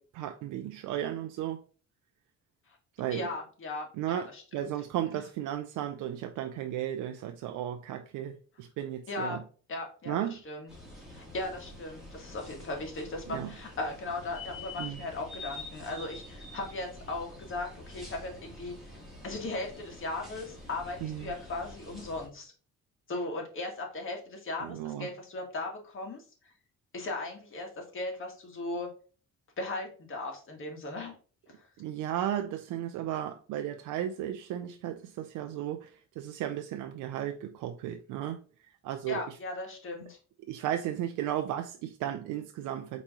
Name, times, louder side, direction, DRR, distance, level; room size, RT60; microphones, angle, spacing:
voice 1, 0.0-1.6 3.0-3.3 4.0-9.4 10.1-10.4 13.3-13.5 14.8-15.0 21.0-21.3 24.6-25.1 31.8-38.4 38.8-39.4 40.5-43.0, right 11 dB, 90° right, 0.5 m, -35 dB
voice 2, 3.1-4.7 5.1-5.2 9.1-9.4 9.7-10.7 11.1-18.7 19.2-22.5 23.1-26.2 26.9-28.9 29.6-31.1 39.1-40.2, left 2 dB, 40° left, 1.6 m, -37 dB
sound 1, 10.7-22.3, left 2 dB, ahead, 2.0 m, -47 dB
4.5 x 3.1 x 3.7 m
cardioid pair, 90°, 30 cm